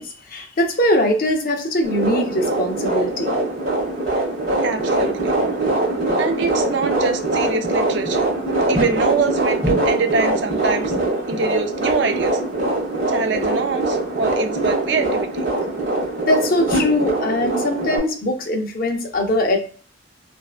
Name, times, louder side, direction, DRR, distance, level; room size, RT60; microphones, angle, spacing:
voice 1, 0.0-3.4 16.3-19.6, left 1 dB, 45° left, 3 dB, 0.5 m, -21 dB
sound 1, 1.8-18.0, right 2 dB, 40° right, 1.5 m, -22 dB
voice 2, 4.6-5.3 6.2-10.9 11.3-12.4 13.1-15.5, right 4 dB, 60° right, 7 dB, 0.4 m, -24 dB
3.1 x 2.6 x 2.4 m, 0.41 s
head